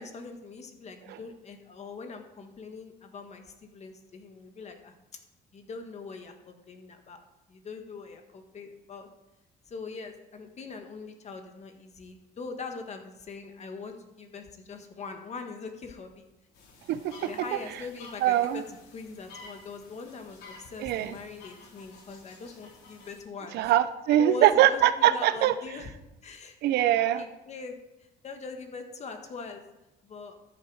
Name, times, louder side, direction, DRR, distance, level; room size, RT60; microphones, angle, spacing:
voice 1, 0.0-4.9 5.5-7.2 7.5-9.1 9.6-16.2 17.2-18.6 18.9-23.6 24.1-25.9 26.2-26.6 27.2-27.8 28.2-29.6 30.0-30.3, left 4 dB, 40° left, 5 dB, 1.7 m, -42 dB
sound 1, 16.5-23.2, left 3 dB, 80° left, 3.4 m, -52 dB
voice 2, 16.9-17.3 18.2-18.6 20.8-21.2 23.5-25.5 26.6-27.2, right 12 dB, 80° right, 14 dB, 0.6 m, -23 dB
13.5 x 7.4 x 4.9 m, 0.96 s
cardioid pair, 110°, 17 cm